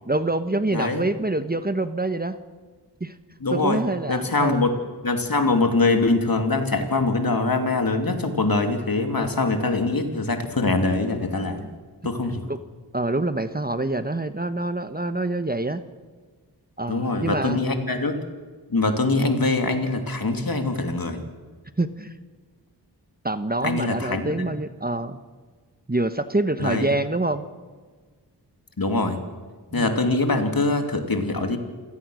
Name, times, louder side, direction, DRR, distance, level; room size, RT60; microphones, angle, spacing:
voice 1, 0.0-2.4 3.0-3.1 3.5-4.7 11.6-11.7 12.5-12.6 12.9-15.8 16.8-17.6 21.8-22.1 23.2-25.2 25.9-27.4 29.7-30.0, right 2 dB, 20° right, 11 dB, 1.1 m, -26 dB
voice 2, 0.7-1.0 3.4-3.8 4.1-4.7 5.0-11.6 12.0-12.4 16.9-18.2 18.7-21.2 23.6-24.4 26.6-26.9 28.8-29.2 29.7-31.6, left 3 dB, 55° left, 6 dB, 2.9 m, -23 dB
27.5 x 17.5 x 6.4 m, 1.5 s
wide cardioid pair, 55°, 42 cm